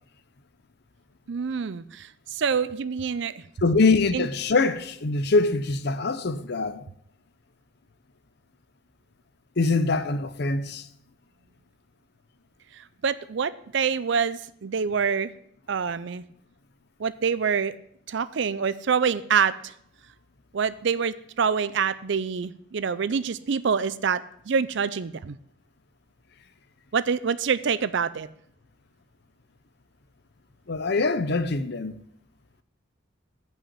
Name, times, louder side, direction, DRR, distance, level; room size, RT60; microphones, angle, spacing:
voice 1, 1.3-3.4 4.1-4.3 13.0-15.3 15.7-16.2 17.0-17.8 18.1-19.7 20.5-24.2 24.5-25.4 26.9-28.3, right 6 dB, 65° right, 0.5 m, -26 dB
voice 2, 3.6-6.8 9.6-10.9 30.7-31.9, left 3 dB, 55° left, 0.7 m, -23 dB
8.6 x 5.7 x 7.2 m
head